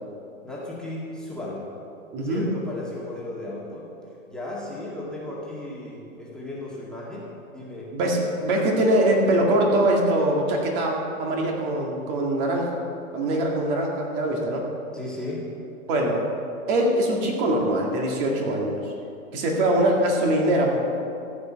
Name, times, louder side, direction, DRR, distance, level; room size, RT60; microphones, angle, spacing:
voice 1, 0.4-1.7 2.2-3.9 4.3-7.9 14.9-15.5, left 1 dB, ahead, -6 dB, 2.0 m, -35 dB
voice 2, 2.1-2.5 7.9-12.8 13.1-14.7 15.9-16.2 16.7-18.9 19.3-20.8, right 1 dB, 40° right, 0 dB, 2.0 m, -23 dB
15.0 x 5.5 x 7.6 m, 2.6 s
hypercardioid pair, 130°, 41 cm